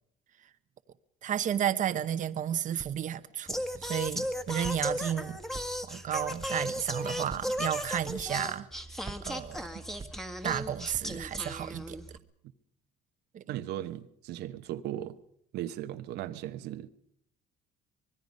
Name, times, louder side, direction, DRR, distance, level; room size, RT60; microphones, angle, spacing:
voice 1, 1.2-5.4 5.8-8.7 9.2-9.7 10.4-12.0 13.3-13.6, right 10 dB, 50° right, 0.9 m, -32 dB
Walk footsteps, 2.8-3.2 3.7-4.3 4.6-5.1 5.5-6.0 6.4-6.7 7.2-7.7 8.1-8.7 9.0-10.6 10.9-11.3, right 4 dB, 25° right, 1.0 m, -47 dB
Singing, 3.5-12.2, equal, ahead, 1.7 m, -36 dB
voice 2, 13.5-15.2 15.5-16.9, right 12 dB, 80° right, 1.0 m, -37 dB
24.5 x 20.5 x 5.3 m
cardioid pair, 110°, 17 cm